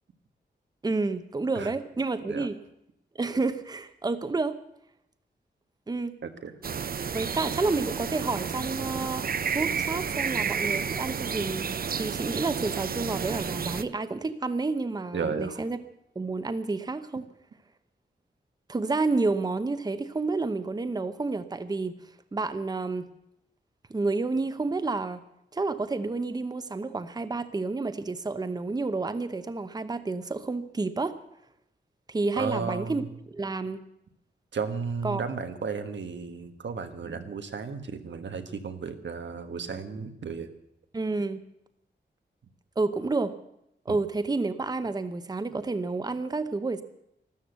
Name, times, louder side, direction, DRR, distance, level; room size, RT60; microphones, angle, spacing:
voice 1, 0.8-2.6 3.1-4.6 5.9-6.1 7.1-9.3 9.5-11.7 12.0-15.8 16.2-17.3 18.7-22.0 22.3-23.1 23.9-25.2 25.5-31.2 32.1-33.0 33.3-33.8 35.0-35.2 40.9-41.4 42.8-43.3 43.9-46.8, right 3 dB, 20° right, 11 dB, 0.8 m, -30 dB
voice 2, 6.2-6.5 15.1-15.7 32.4-33.1 34.5-40.5 43.9-44.0, right 5 dB, 90° right, 8 dB, 1.5 m, -34 dB
sound 1, 6.6-13.8, right 6 dB, 55° right, 0.6 m, -31 dB
13.5 x 13.0 x 8.0 m, 0.79 s
wide cardioid pair, 165°, 18 cm